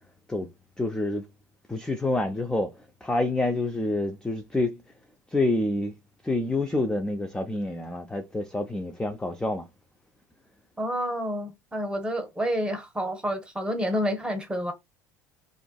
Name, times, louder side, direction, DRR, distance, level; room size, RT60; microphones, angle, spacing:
voice 1, 0.8-1.3 1.7-2.7 3.0-4.8 5.3-5.9 6.2-9.7, left 2 dB, 5° left, 0.4 m, -27 dB
voice 2, 10.8-14.7, equal, 10° right, 0.9 m, -29 dB
2.4 x 2.2 x 2.3 m
hypercardioid pair, 70°, 9 cm